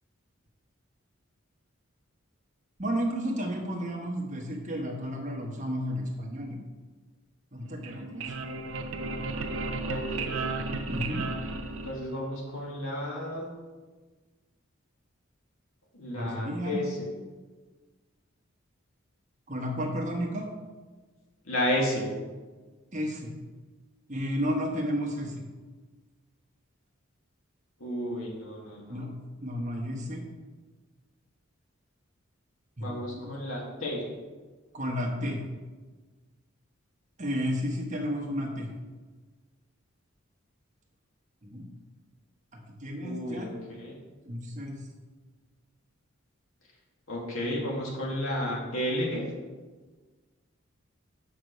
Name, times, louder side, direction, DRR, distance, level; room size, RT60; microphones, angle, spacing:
voice 1, 2.8-6.6 7.5-8.2 10.9-11.2 16.1-16.8 19.5-20.5 22.9-23.3 24.1-25.4 28.9-29.1 29.4-30.2 32.8-33.3 34.7-35.4 37.2-38.7 41.4-41.7 42.8-43.5 44.2-44.7, equal, 35° right, 0 dB, 1.2 m, -32 dB
sound 1, 7.7-12.4, right 3 dB, 75° right, 0.6 m, -34 dB
voice 2, 9.8-10.4 11.7-13.5 15.9-17.0 21.4-22.1 27.8-29.1 32.8-34.1 43.0-43.5 43.8-43.9 47.1-49.3, left 1 dB, 90° left, -3 dB, 2.0 m, -32 dB
6.0 x 4.8 x 6.5 m, 1.3 s
head